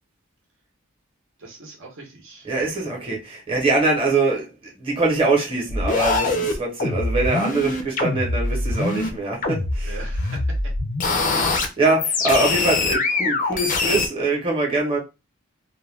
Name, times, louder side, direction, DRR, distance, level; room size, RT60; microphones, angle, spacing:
voice 1, 1.4-2.6 9.8-10.7, right 3 dB, 65° right, 0.8 m, -41 dB
voice 2, 2.4-10.0 11.1-11.3 11.8-15.0, right 2 dB, 25° right, 0.9 m, -23 dB
sound 1, 5.7-9.1 9.4-11.7 12.0-14.1, left 3 dB, 40° left, 0.5 m, -23 dB
2.3 x 2.2 x 3.2 m
head